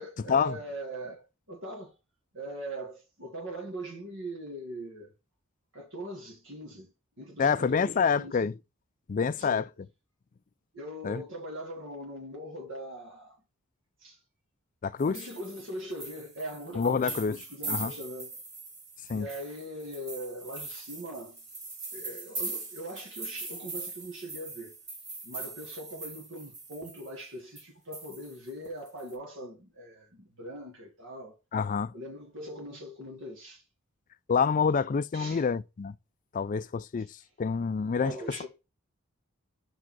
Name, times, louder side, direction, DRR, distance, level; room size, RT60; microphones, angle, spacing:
voice 1, 0.0-1.9 2.3-5.1 5.7-6.9 7.2-8.5 9.3-9.7 10.7-13.4 14.0-14.2 15.0-18.4 19.1-21.4 21.9-24.8 25.2-31.3 31.9-33.6 35.1-35.5 38.0-38.5, right 1 dB, 60° right, 1.9 m, -41 dB
voice 2, 7.4-8.5 9.1-9.6 11.0-11.2 14.8-15.2 16.8-17.4 17.7-17.9 19.1-19.3 31.5-31.9 34.3-35.9 36.3-38.1, left 5 dB, 35° left, 0.3 m, -27 dB
sound 1, 15.0-27.2 27.6-27.7 27.9-29.1, right 3 dB, 45° right, 2.7 m, -41 dB
5.6 x 4.9 x 6.0 m
head